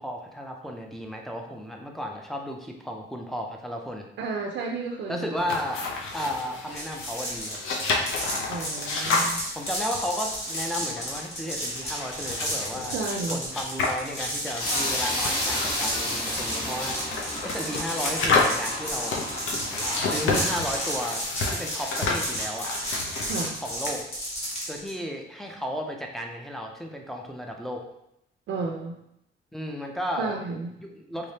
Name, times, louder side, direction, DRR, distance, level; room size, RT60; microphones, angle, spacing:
voice 1, 0.0-4.1 5.1-5.9 6.1-7.6 9.5-13.0 13.3-19.2 19.8-22.7 23.6-24.0 24.7-27.8 29.5-30.3 30.8-31.3, equal, ahead, 0 dB, 0.4 m, -34 dB
voice 2, 4.2-5.3 8.5-9.4 12.9-13.4 23.3-23.6 28.5-29.0 30.2-30.7, right 4 dB, 65° right, 0 dB, 0.4 m, -32 dB
sound 1, 5.4-24.0, left 3 dB, 90° left, 0.7 m, -31 dB
sound 2, 6.7-24.9, equal, 30° left, 1.2 m, -32 dB
sound 3, 14.6-21.0, left 1 dB, 50° left, 1.5 m, -32 dB
3.5 x 3.3 x 2.7 m, 0.79 s
wide cardioid pair, 165°, 20 cm